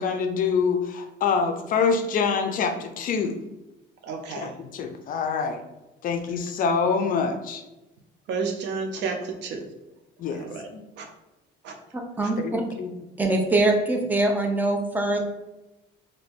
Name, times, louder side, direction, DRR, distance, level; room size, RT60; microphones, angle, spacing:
voice 1, 0.0-3.4 4.4-5.6 6.0-7.6 10.2-10.8 12.4-12.9, left 5 dB, 45° left, 6 dB, 0.4 m, -26 dB
voice 2, 4.0-4.5 8.3-9.6 10.3-10.7 11.0-11.1 11.6-11.8 12.2-12.3, right 4 dB, 70° right, 5 dB, 0.6 m, -31 dB
voice 3, 11.9-12.6 13.2-15.2, right 2 dB, 10° right, 3 dB, 0.5 m, -23 dB
2.7 x 2.5 x 3.4 m, 1.0 s
cardioid pair, 125°, 19 cm